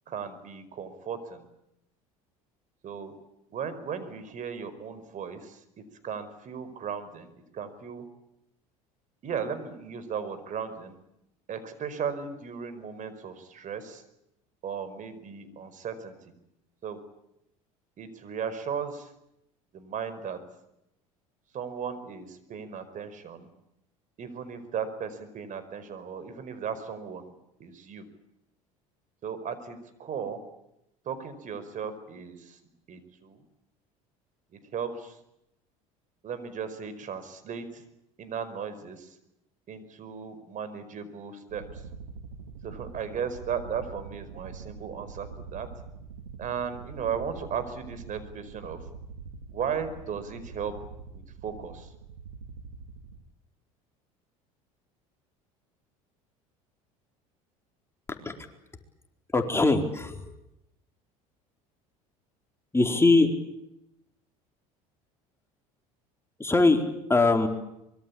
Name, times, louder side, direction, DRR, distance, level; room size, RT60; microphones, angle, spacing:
voice 1, 0.1-1.4 2.8-3.1 3.5-5.6 6.0-8.1 9.2-11.0 11.5-14.0 14.6-16.3 16.8-17.0 18.0-19.1 19.7-20.4 21.5-23.5 24.2-27.3 27.6-28.1 29.2-30.4 31.0-32.6 32.9-33.4 34.5-35.2 36.2-37.8 38.2-39.2 39.7-41.8 42.6-45.7 46.4-48.8 49.5-50.8 51.1-51.9, right 7 dB, 45° right, 12 dB, 5.1 m, -36 dB
sound 1, 41.5-53.2, right 5 dB, 90° right, 2.5 m, -44 dB
voice 2, 59.3-60.2 62.7-63.3 66.4-66.8 67.1-67.5, left 3 dB, 15° left, 4 dB, 4.3 m, -21 dB
24.5 x 23.0 x 8.7 m, 0.83 s
hypercardioid pair, 75°, 18 cm